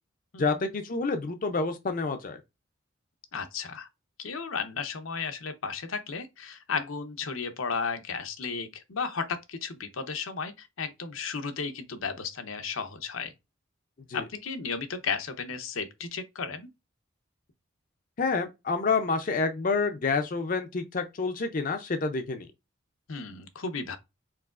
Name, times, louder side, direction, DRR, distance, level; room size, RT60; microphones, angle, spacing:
voice 1, 0.4-2.4 14.1-14.2 18.2-22.5, left 4 dB, 40° left, 0.5 m, -28 dB
voice 2, 3.3-3.9 4.2-13.3 14.1-16.7 23.1-24.0, left 5 dB, 80° left, 0.7 m, -34 dB
4.7 x 3.8 x 2.4 m
head